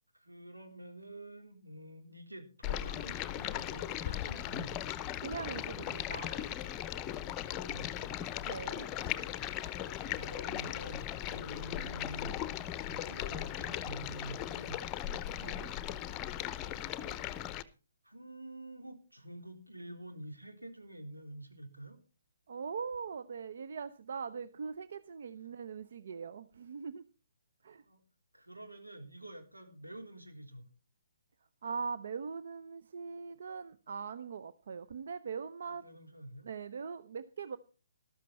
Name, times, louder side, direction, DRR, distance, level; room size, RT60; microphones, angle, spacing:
voice 1, 0.2-4.8 7.5-8.2 10.1-12.4 12.9-14.8 15.5-16.3 18.0-22.0 27.9-28.0 28.3-30.7 35.8-36.5, right 1 dB, 90° right, 5 dB, 3.7 m, -48 dB
Stream, 2.6-17.6, left 11 dB, 20° left, 0.8 m, -38 dB
voice 2, 5.2-6.5 8.4-8.9 15.4-15.7 22.5-27.1 27.6-27.8 31.6-35.8 36.4-37.6, right 5 dB, 55° right, 14 dB, 0.7 m, -41 dB
13.5 x 13.0 x 4.3 m, 0.35 s
figure-of-eight pair, 135°, 0 cm